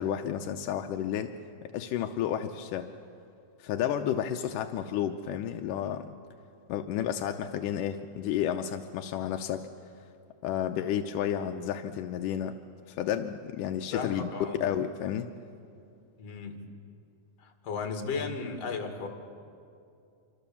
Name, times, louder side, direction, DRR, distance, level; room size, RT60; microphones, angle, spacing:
voice 1, 0.0-1.3 1.7-2.9 3.6-6.1 6.7-9.7 10.4-12.6 12.9-14.3 14.6-15.3, left 10 dB, 85° left, 6 dB, 2.3 m, -31 dB
voice 2, 13.9-14.6 16.2-16.7 17.4-19.1, left 5 dB, 55° left, 4 dB, 3.1 m, -35 dB
26.5 x 25.0 x 7.1 m, 2.5 s
omnidirectional pair, 3.7 m